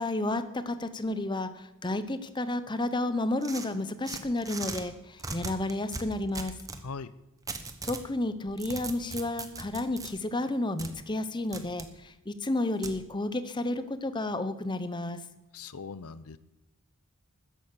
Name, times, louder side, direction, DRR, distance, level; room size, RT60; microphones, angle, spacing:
voice 1, 0.0-6.5 7.8-15.2, left 2 dB, 20° left, 11 dB, 0.8 m, -31 dB
sound 1, 3.4-4.8 5.2-6.8 7.5-8.1 8.5-10.1 10.8-10.9 11.5-11.9 12.8-13.0, right 3 dB, 15° right, 1.1 m, -38 dB
voice 2, 6.8-7.1 15.5-16.4, left 4 dB, 90° left, 16 dB, 0.7 m, -40 dB
13.0 x 10.0 x 6.8 m, 0.98 s
head